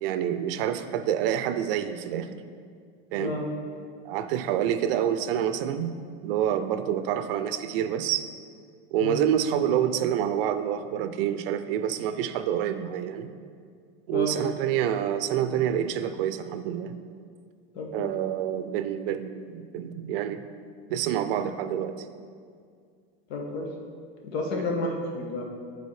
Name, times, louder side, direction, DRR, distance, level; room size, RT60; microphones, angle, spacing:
voice 1, 0.0-2.4 3.1-3.4 4.0-6.0 6.2-8.2 8.9-13.3 14.1-16.9 17.9-20.4 20.9-22.0, right 10 dB, 65° right, 10 dB, 0.5 m, -27 dB
voice 2, 17.7-18.1 23.3-23.7 24.2-25.4, left 2 dB, 80° left, 0 dB, 1.2 m, -31 dB
8.2 x 4.1 x 3.2 m, 2.1 s
supercardioid pair, 140°, 31 cm